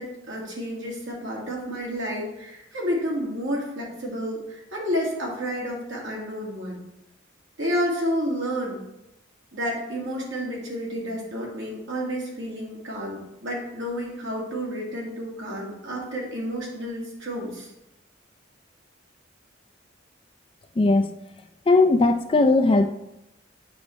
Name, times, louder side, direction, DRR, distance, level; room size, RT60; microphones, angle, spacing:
voice 1, 0.0-6.8 7.6-8.8 9.5-17.7, equal, 75° right, -3 dB, 2.1 m, -30 dB
voice 2, 20.8-21.1 21.7-22.9, left 3 dB, 25° left, 8 dB, 0.4 m, -18 dB
7.8 x 5.1 x 3.1 m, 0.87 s
head